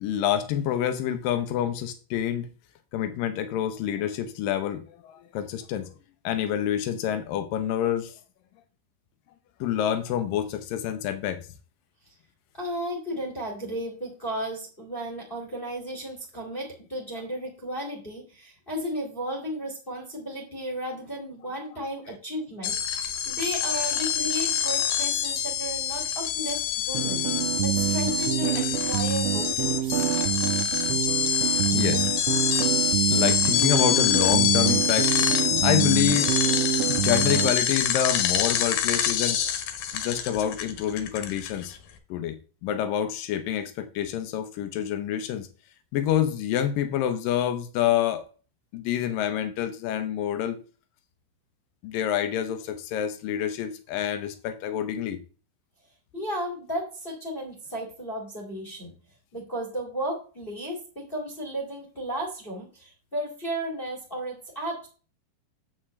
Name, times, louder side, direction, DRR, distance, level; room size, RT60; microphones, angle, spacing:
voice 1, 0.0-2.5 2.9-5.9 6.2-8.2 9.6-11.4 31.3-32.2 33.1-35.3 35.6-36.3 36.9-39.4 39.9-41.7 42.1-42.4 42.6-45.5 45.9-48.2 48.7-50.6 51.8-55.2, left 10 dB, 90° left, 1.9 m, -27 dB
voice 2, 12.5-30.2 36.7-36.9 39.8-40.0 56.1-58.9 59.3-64.9, equal, 35° left, 0.8 m, -34 dB
sound 1, 22.6-41.8, left 8 dB, 70° left, 2.3 m, -26 dB
sound 2, 26.9-37.6, right 13 dB, 85° right, 3.0 m, -27 dB
9.5 x 7.8 x 3.2 m
omnidirectional pair, 5.2 m